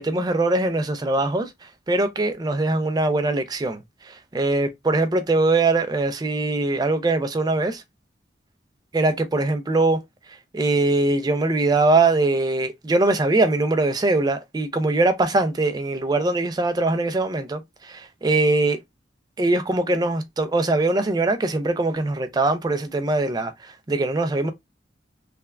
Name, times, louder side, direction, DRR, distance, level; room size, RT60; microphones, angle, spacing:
voice 1, 0.0-1.5 1.9-3.8 4.1-7.8 8.9-10.0 10.5-18.8 19.4-24.5, right 2 dB, 20° right, 0.3 m, -22 dB
3.3 x 2.1 x 2.3 m
head